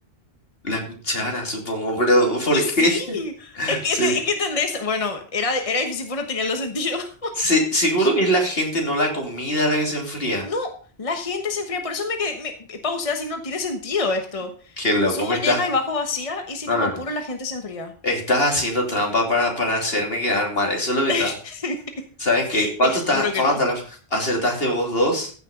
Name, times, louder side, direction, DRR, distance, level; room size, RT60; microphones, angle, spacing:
voice 1, 0.6-3.2 3.6-4.2 7.4-10.5 14.8-15.6 16.7-17.0 18.0-21.3 22.2-23.8 24.1-25.3, left 1 dB, 70° left, 1 dB, 3.3 m, -22 dB
voice 2, 2.5-7.3 8.0-8.1 10.4-10.7 11.0-14.7 15.1-17.9 20.3-20.4 21.1-21.8 22.5-23.6, left 4 dB, 35° left, 5 dB, 1.3 m, -27 dB
15.0 x 6.5 x 5.3 m, 0.41 s
omnidirectional pair, 1.1 m